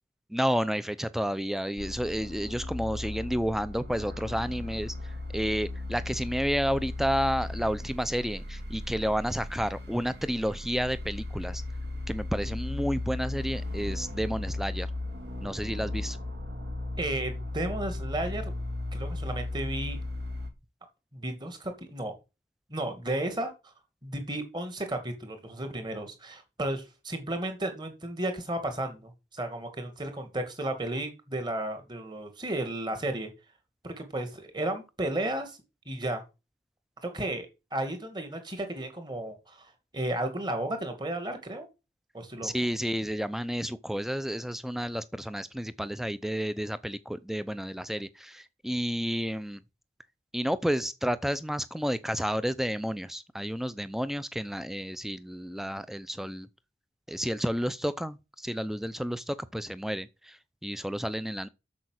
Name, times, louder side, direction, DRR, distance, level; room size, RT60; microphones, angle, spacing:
voice 1, 0.3-11.6 12.1-14.9 15.4-16.2 42.4-49.6 50.3-56.5 57.1-61.5, equal, ahead, 0.5 m, -31 dB
sound 1, 1.8-20.5, left 2 dB, 65° right, 1.9 m, -36 dB
voice 2, 17.0-18.5 18.9-20.0 21.1-22.2 22.7-23.5 24.0-33.3 33.8-35.6 35.9-36.2 37.0-41.7 42.1-42.5, right 1 dB, 25° right, 2.0 m, -33 dB
8.5 x 6.9 x 6.4 m
head